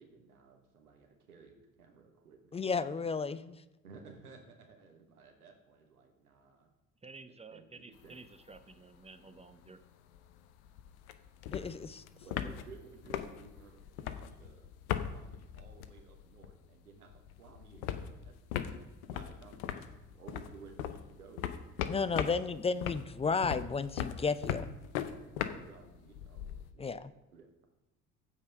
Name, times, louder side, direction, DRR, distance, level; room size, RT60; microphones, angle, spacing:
voice 1, 0.0-2.6 3.8-6.7 7.5-8.1 12.2-14.7 15.1-18.3 18.7-18.8 19.1-21.5 25.1-27.0 27.3-27.5, right 5 dB, 85° right, 3 dB, 1.2 m, -55 dB
voice 2, 2.5-3.6 11.5-12.0 21.9-24.6 26.8-27.1, left 4 dB, 15° left, 15 dB, 0.4 m, -33 dB
voice 3, 7.0-9.8, right 4 dB, 15° right, 9 dB, 1.0 m, -52 dB
sound 1, 7.9-8.6 8.9-9.0 9.2-16.7 16.9-26.7, left 9 dB, 70° left, 0.8 m, -40 dB
15.0 x 5.4 x 5.2 m, 1.0 s
figure-of-eight pair, 55°, 44 cm